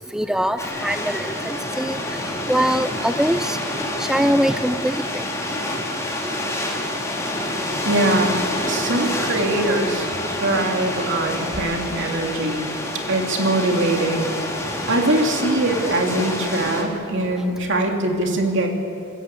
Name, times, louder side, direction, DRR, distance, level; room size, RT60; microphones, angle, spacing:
voice 1, 0.1-2.0 2.5-3.6 4.0-5.0, equal, 5° right, 10 dB, 0.4 m, -22 dB
sound 1, 0.6-16.8, left 1 dB, 15° left, 3.1 m, -27 dB
voice 2, 7.8-8.4 8.7-14.3 14.9-18.7, right 1 dB, 60° right, 2 dB, 3.0 m, -22 dB
27.0 x 14.0 x 8.5 m, 2.6 s
head